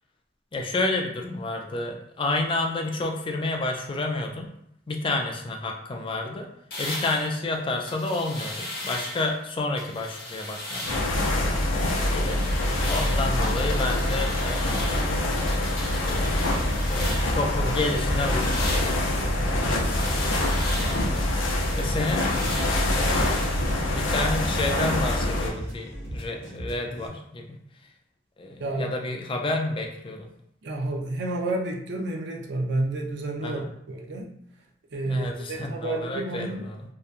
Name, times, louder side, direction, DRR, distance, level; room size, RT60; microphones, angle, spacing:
voice 1, 0.5-4.5 4.9-6.5 6.8-11.4 12.1-12.4 12.9-15.1 16.0-19.1 19.7-19.9 21.7-22.3 23.0-23.6 23.9-27.6 28.4-30.3 33.4-33.7 35.1-36.9, left 2 dB, 25° left, 2 dB, 0.3 m, -30 dB
sound 1, 6.7-9.4 9.8-11.2 11.6-17.5 17.8-23.5, left 1 dB, 55° left, 0.8 m, -37 dB
sound 2, 10.9-25.5, left 1 dB, 85° left, 0.5 m, -25 dB
sound 3, 16.4-27.1, equal, 90° right, 1.2 m, -37 dB
voice 2, 28.6-28.9 30.6-34.2 34.9-36.7, right 2 dB, 60° right, 1 dB, 0.5 m, -30 dB
2.8 x 2.2 x 2.4 m, 0.75 s
head